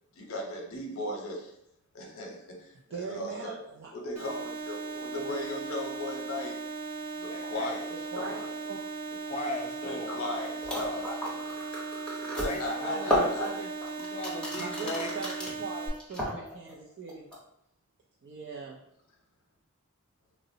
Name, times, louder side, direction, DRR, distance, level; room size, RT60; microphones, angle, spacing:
voice 1, 0.2-1.5 1.9-3.5 3.9-6.5 7.2-8.5 9.8-11.2 12.3-13.5, left 1 dB, 75° left, 0 dB, 0.7 m, -37 dB
voice 2, 2.9-3.9 7.9-8.8 12.8-13.7 14.6-17.3 18.2-18.8, right 4 dB, 55° right, -3 dB, 0.4 m, -40 dB
sound 1, 4.2-15.9, right 4 dB, 30° right, 0.8 m, -38 dB
voice 3, 7.3-7.8 9.2-11.7 12.4-13.1 14.0-15.1, left 2 dB, 30° left, 1 dB, 0.4 m, -38 dB
sound 2, 10.6-15.5 15.9-16.7 17.1-17.4, left 1 dB, 5° left, 0.7 m, -32 dB
3.7 x 2.0 x 2.6 m, 0.75 s
head